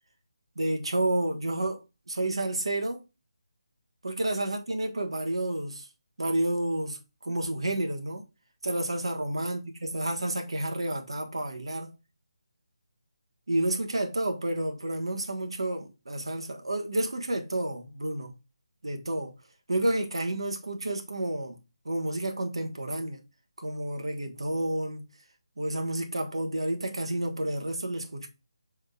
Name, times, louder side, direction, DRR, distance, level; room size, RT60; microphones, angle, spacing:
voice 1, 0.6-3.0 4.0-5.9 6.2-8.2 8.6-11.9 13.5-18.3 18.8-19.3 19.7-21.6 21.8-23.2 23.6-25.1 25.6-28.3, right 1 dB, 70° right, 1.3 m, -30 dB
6.4 x 3.5 x 2.3 m
figure-of-eight pair, 155°, 3 cm